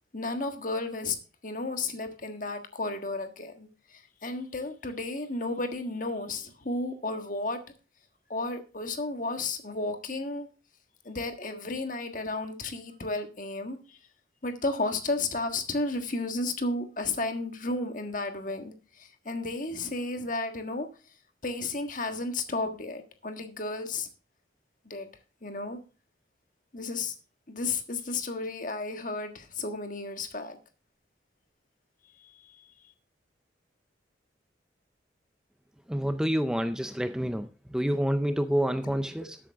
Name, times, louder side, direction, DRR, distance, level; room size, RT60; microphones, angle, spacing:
voice 1, 0.1-1.2 1.4-7.6 8.3-10.5 11.0-14.0 14.4-20.9 21.4-24.1 24.8-25.1 25.4-25.8 26.7-27.1 27.5-30.6 32.4-32.6, left 2 dB, 45° left, 1.5 m, -33 dB
voice 2, 35.9-39.4, equal, 5° right, 0.4 m, -28 dB
13.0 x 8.6 x 3.5 m
head